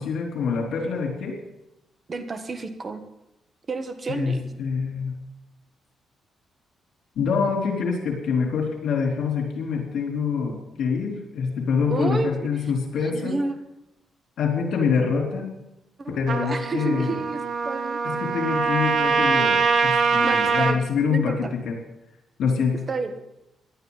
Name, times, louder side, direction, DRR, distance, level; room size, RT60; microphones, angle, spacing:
voice 1, 0.0-1.3 4.1-5.1 7.2-13.4 14.4-15.5 16.1-17.2 18.0-21.7 22.4-22.8, left 5 dB, 75° left, 0 dB, 3.9 m, -25 dB
voice 2, 2.1-3.0 3.7-4.4 11.9-12.7 13.0-13.6 16.0-18.0 20.2-20.8 21.1-21.5 22.9-23.1, right 3 dB, 35° right, 8 dB, 1.4 m, -30 dB
Trumpet, 16.3-20.8, right 5 dB, 55° right, 1.2 m, -23 dB
18.0 x 11.5 x 4.2 m, 0.89 s
cardioid pair, 110°, 0 cm